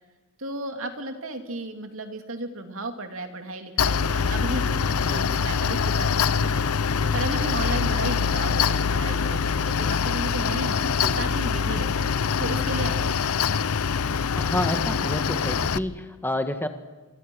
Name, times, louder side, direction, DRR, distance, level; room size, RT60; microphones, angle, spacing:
voice 1, 0.4-6.7 7.1-10.9 11.2-11.9 12.4-13.8, right 2 dB, 65° right, 5 dB, 2.8 m, -34 dB
Mechanical fan, 3.8-15.8, left 6 dB, 80° left, 0.7 m, -24 dB
voice 2, 5.1-5.4 7.0-7.3 11.0-11.3 14.4-16.7, left 1 dB, 10° left, 7 dB, 1.6 m, -30 dB
27.0 x 25.0 x 6.3 m, 1.3 s
head